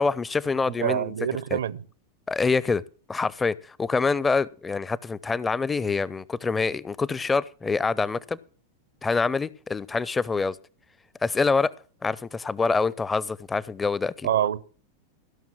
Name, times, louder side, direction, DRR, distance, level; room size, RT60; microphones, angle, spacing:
voice 1, 0.0-1.1 1.5-1.6 2.3-2.8 3.1-8.4 9.0-10.6 11.2-11.7 12.0-14.3, left 4 dB, 15° left, 0.5 m, -25 dB
voice 2, 0.8-1.8 14.2-14.6, right 10 dB, 65° right, 0.6 m, -26 dB
16.0 x 6.0 x 7.4 m
figure-of-eight pair, 90°, 0 cm